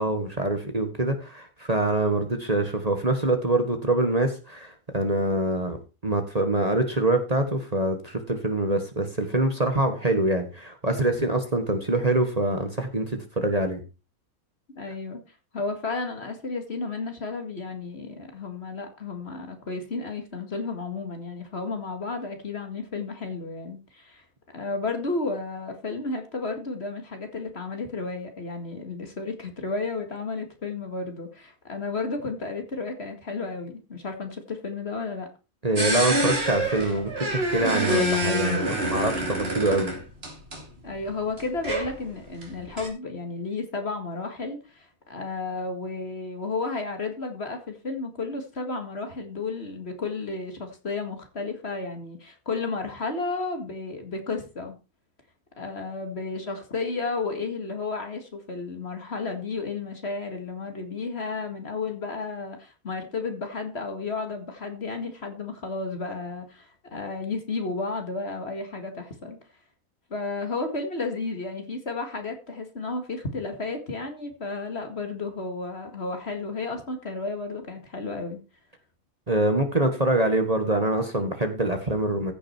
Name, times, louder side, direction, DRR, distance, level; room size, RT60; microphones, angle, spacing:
voice 1, 0.0-5.8 6.0-13.8 35.6-39.9 79.3-82.3, right 2 dB, 25° right, 1.6 m, -25 dB
voice 2, 14.8-15.2 15.5-24.3 24.5-35.3 40.8-54.8 55.6-69.4 70.1-78.4, left 3 dB, 45° left, 2.2 m, -32 dB
sound 1, 35.8-40.6 41.0-41.1 41.4-42.9, right 1 dB, 45° right, 3.1 m, -26 dB
15.0 x 6.3 x 4.5 m
omnidirectional pair, 1.5 m